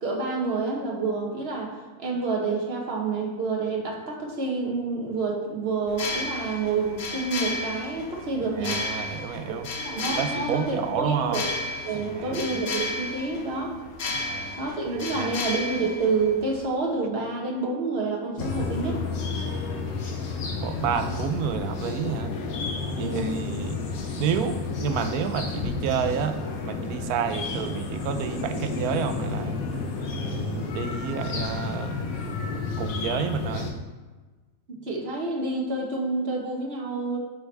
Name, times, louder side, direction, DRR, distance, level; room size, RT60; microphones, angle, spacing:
voice 1, 0.0-8.8 9.5-11.4 11.8-13.7 14.6-19.0 23.0-23.4 34.7-37.2, right 3 dB, 45° right, -1 dB, 1.5 m, -28 dB
sound 1, 5.9-16.7, left 2 dB, 50° left, 0.6 m, -33 dB
voice 2, 8.6-9.7 10.1-11.5 11.9-12.4 14.1-14.6 14.9-15.3 20.6-22.3 22.9-23.8 24.2-26.4 26.6-29.6 30.2-32.0 32.8-33.7, right 7 dB, 85° right, 9 dB, 1.1 m, -30 dB
sound 2, 18.4-33.7, left 4 dB, 75° left, 1.4 m, -31 dB
9.6 x 4.6 x 3.3 m, 1.3 s
omnidirectional pair, 1.6 m